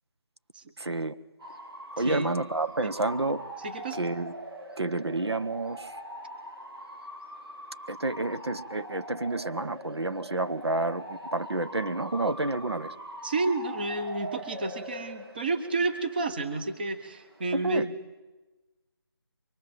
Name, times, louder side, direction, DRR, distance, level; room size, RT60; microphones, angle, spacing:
voice 1, 0.8-1.1 2.0-3.4 3.9-4.3 4.8-6.0 7.9-12.9 17.5-17.9, right 2 dB, 85° right, 11 dB, 1.2 m, -29 dB
Bark / Motor vehicle (road) / Siren, 1.4-17.7, equal, 65° right, 3.3 m, -42 dB
voice 2, 2.0-2.3 3.6-4.0 13.2-17.9, right 3 dB, 20° right, 8 dB, 1.0 m, -30 dB
24.0 x 21.5 x 7.8 m, 1.2 s
figure-of-eight pair, 170°, 13 cm